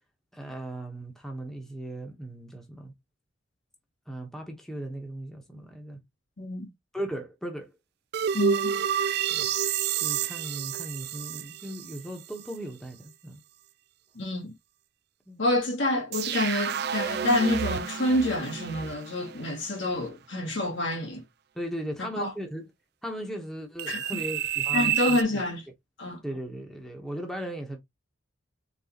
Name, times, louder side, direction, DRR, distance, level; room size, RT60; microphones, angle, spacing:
voice 1, 0.3-2.9 4.1-6.0 6.9-7.7 9.3-9.5 10.0-13.4 15.3-15.4 21.5-22.7 23.0-25.4 26.2-27.8, right 1 dB, ahead, 1.0 m, -37 dB
voice 2, 6.4-6.7 8.3-8.9 14.2-14.5 15.4-21.2 22.0-22.3 23.9-24.2 24.7-25.6 26.0-26.2, left 1 dB, 70° left, 1.8 m, -28 dB
sound 1, 8.1-12.0 12.5-12.6 16.1-19.8 23.8-25.2, right 8 dB, 55° right, 0.4 m, -29 dB
4.1 x 4.0 x 2.8 m
head